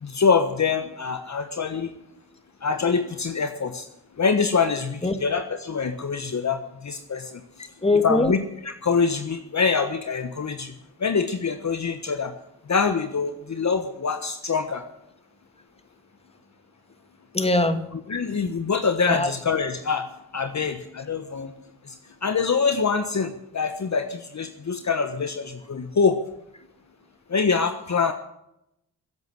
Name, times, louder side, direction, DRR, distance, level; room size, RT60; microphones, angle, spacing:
voice 1, 0.0-1.9 2.6-3.9 4.2-7.7 8.0-10.7 11.0-12.3 12.7-14.8 17.9-20.1 20.3-21.5 21.8-26.2 27.3-28.1, left 5 dB, 40° left, 8 dB, 1.3 m, -25 dB
voice 2, 7.8-8.3 17.3-17.8 19.1-19.3, left 2 dB, 15° left, 9 dB, 2.1 m, -21 dB
16.0 x 8.4 x 9.4 m, 0.83 s
supercardioid pair, 55°, 42 cm